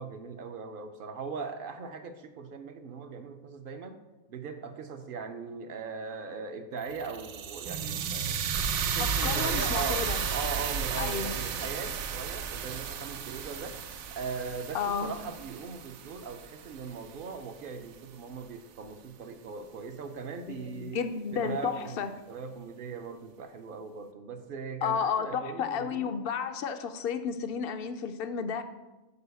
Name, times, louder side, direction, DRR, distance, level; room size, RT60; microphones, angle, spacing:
voice 1, 0.0-4.0 4.3-13.8 14.1-21.0 21.3-26.2, right 5 dB, 55° right, 8 dB, 0.6 m, -40 dB
sound 1, 6.8-17.0, right 7 dB, 75° right, 1.1 m, -33 dB
voice 2, 9.0-10.2 11.0-11.3 14.7-15.1 20.5-22.1 24.8-28.6, left 7 dB, 70° left, 9 dB, 0.5 m, -32 dB
6.8 x 4.6 x 6.8 m, 1.1 s
omnidirectional pair, 1.5 m